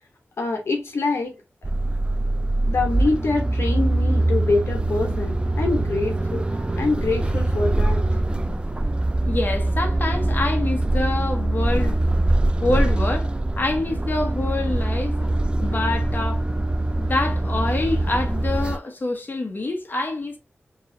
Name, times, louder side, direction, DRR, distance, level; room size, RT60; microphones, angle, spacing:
voice 1, 0.4-1.4 2.7-6.5 6.8-8.0, left 3 dB, 85° left, 1.0 m, -25 dB
sound 1, 1.6-18.8, right 1 dB, 25° right, 0.4 m, -23 dB
voice 2, 9.3-12.0 12.6-13.3 13.6-15.3 15.6-16.4 16.9-20.4, left 2 dB, 50° left, 1.2 m, -26 dB
4.6 x 3.0 x 2.7 m
wide cardioid pair, 60°, 4 cm